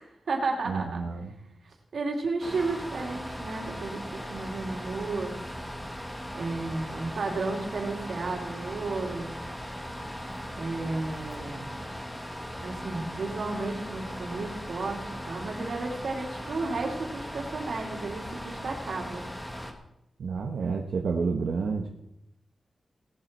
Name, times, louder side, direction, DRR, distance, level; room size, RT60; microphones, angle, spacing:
voice 1, 0.0-1.0 1.6-5.3 6.3-9.3 10.6-11.7 12.6-19.2, right 3 dB, 65° right, 0 dB, 3.0 m, -33 dB
voice 2, 0.7-1.3 20.2-21.9, right 5 dB, 85° right, 1 dB, 1.1 m, -29 dB
sound 1, 2.4-19.7, equal, 10° left, 1.5 m, -38 dB
17.5 x 12.0 x 4.6 m, 0.84 s
wide cardioid pair, 175°, 0 cm